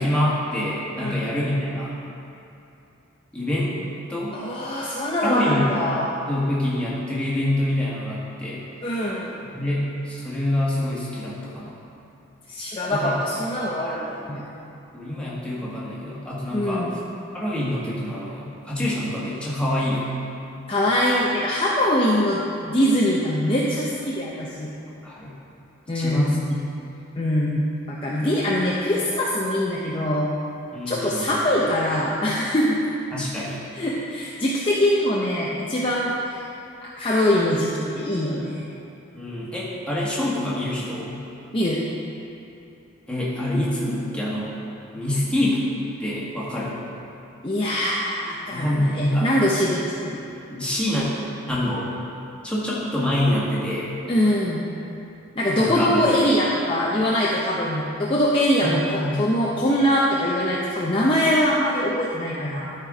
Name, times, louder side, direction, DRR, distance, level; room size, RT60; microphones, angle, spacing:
voice 1, 0.0-1.9 3.3-3.8 4.1-4.4 5.2-5.7 6.3-8.6 9.5-11.8 12.9-13.2 14.9-16.8 17.3-20.1 25.0-25.3 25.9-26.6 30.7-31.4 33.1-33.6 39.1-41.2 43.1-44.5 44.9-45.6 46.0-46.8 48.5-49.3 50.5-51.1 51.5-51.9 52.4-53.9 55.6-56.1 58.6-59.2, left 1 dB, 5° left, -8 dB, 1.6 m, -26 dB
voice 2, 4.3-6.1 8.8-9.3 12.5-14.4 16.5-16.9 20.7-24.7 25.9-26.4 27.2-30.3 30.9-32.8 33.7-36.4 36.8-38.6 41.5-41.8 47.4-50.2 54.1-54.7 55.4-62.7, equal, 25° left, -5 dB, 0.6 m, -23 dB
12.5 x 4.4 x 4.9 m, 2.8 s
head